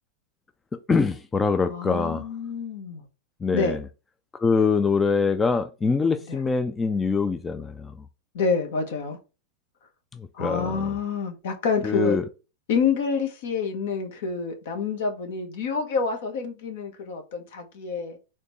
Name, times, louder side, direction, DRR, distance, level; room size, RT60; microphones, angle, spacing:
voice 1, 0.9-2.2 3.4-3.8 4.4-7.7 10.4-10.8 11.8-12.2, left 4 dB, 15° left, 0.4 m, -23 dB
voice 2, 1.6-3.0 3.5-3.8 6.3-6.4 8.3-9.2 10.3-12.2 12.7-18.2, left 5 dB, 65° left, 1.2 m, -27 dB
4.3 x 2.8 x 3.2 m
hypercardioid pair, 105°, 0 cm